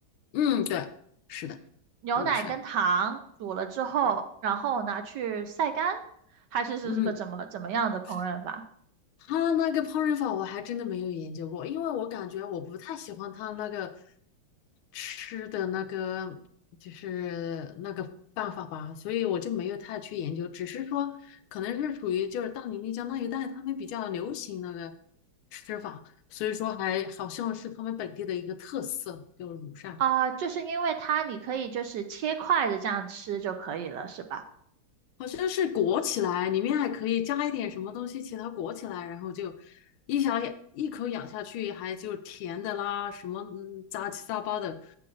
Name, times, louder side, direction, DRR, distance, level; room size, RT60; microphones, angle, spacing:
voice 1, 0.3-0.9 1.3-1.6 2.2-2.5 6.8-7.1 9.3-13.9 14.9-16.4 16.8-18.1 18.4-24.9 25.5-26.0 26.3-30.0 35.2-39.8 40.1-44.9, left 9 dB, 85° left, 10 dB, 1.5 m, -32 dB
voice 2, 2.0-6.0 6.5-8.6 30.0-34.4, right 7 dB, 70° right, 7 dB, 1.1 m, -29 dB
7.7 x 7.4 x 3.8 m, 0.67 s
omnidirectional pair, 2.3 m